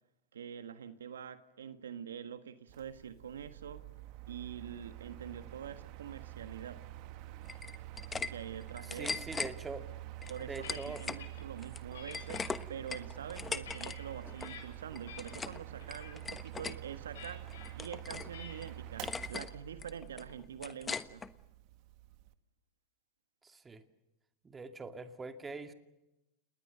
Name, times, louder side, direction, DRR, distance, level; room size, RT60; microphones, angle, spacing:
voice 1, 0.3-3.8 4.3-6.8 8.3-9.3 10.3-21.2, right 8 dB, 90° right, 10 dB, 1.5 m, -45 dB
Mechanical fan, 2.7-22.3, right 15 dB, 55° right, 1.5 m, -47 dB
sound 1, 7.5-8.3 8.6-9.5 10.2-11.2 11.6-14.0 14.2-14.5 14.9-15.6 15.9-16.8 17.2-18.3 18.6-18.7 19.0-19.5 19.8-21.3, left 5 dB, 20° left, 1.2 m, -40 dB
voice 2, 8.9-9.9 10.4-11.0 23.4-23.8 24.4-25.7, right 4 dB, 15° right, 7 dB, 2.4 m, -43 dB
sound 2, 10.2-11.4 11.9-12.5 13.1-14.6 15.1-15.5 15.8-16.2 17.2-17.7 18.3-18.7, left 7 dB, 80° left, 7.4 m, -51 dB
28.0 x 20.5 x 6.8 m, 0.96 s
hypercardioid pair, 105°, 0 cm